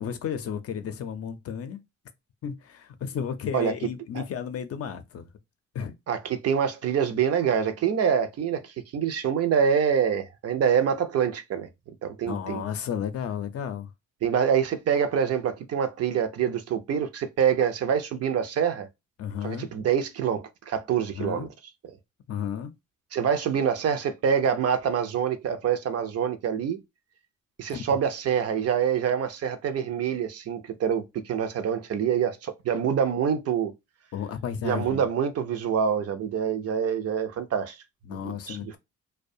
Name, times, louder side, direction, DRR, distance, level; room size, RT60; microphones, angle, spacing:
voice 1, 0.0-1.8 2.4-5.3 5.7-5.9 12.3-13.9 19.2-19.7 21.1-21.5 22.3-22.7 27.7-27.8 34.1-35.0 38.1-38.8, left 8 dB, 50° left, 0.5 m, -33 dB
voice 2, 6.1-11.7 12.0-12.6 14.2-18.9 19.4-21.5 23.1-26.8 27.6-33.7 34.6-37.8 38.1-38.8, right 8 dB, 55° right, 0.5 m, -26 dB
2.3 x 2.2 x 2.6 m
cardioid pair, 90°, 30 cm